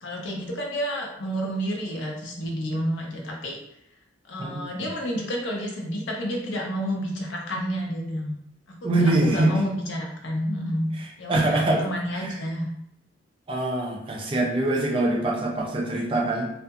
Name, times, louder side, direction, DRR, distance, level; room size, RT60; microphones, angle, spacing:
voice 1, 0.0-3.6 4.3-8.4 8.7-10.9 11.2-12.7, equal, 75° left, 0 dB, 0.6 m, -30 dB
voice 2, 8.8-9.5 11.3-11.9 12.2-12.3 13.5-16.5, right 2 dB, 30° right, 0 dB, 0.4 m, -23 dB
2.7 x 2.5 x 2.3 m, 0.76 s
head